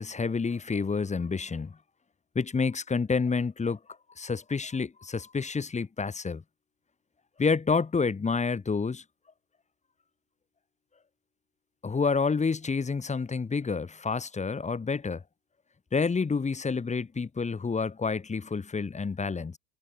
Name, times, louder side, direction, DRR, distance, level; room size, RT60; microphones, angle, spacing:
voice 1, 0.0-1.7 2.3-3.8 4.2-6.4 7.4-9.0 11.8-15.2 15.9-19.6, left 4 dB, 15° left, 2.8 m, -29 dB
hypercardioid pair, 110°, 47 cm